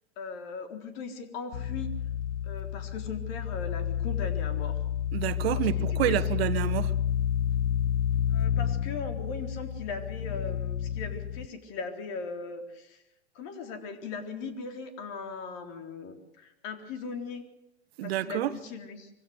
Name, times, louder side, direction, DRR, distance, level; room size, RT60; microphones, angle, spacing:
voice 1, 0.2-1.9 2.4-4.8 5.7-6.2 8.3-13.0 13.3-17.4 18.0-19.1, left 4 dB, 50° left, 3.9 m, -39 dB
sound 1, 1.5-11.5, left 9 dB, 85° left, 0.8 m, -30 dB
voice 2, 5.1-6.9 18.0-18.5, right 13 dB, 60° right, 1.3 m, -28 dB
24.5 x 16.0 x 8.1 m
hypercardioid pair, 100°, 34 cm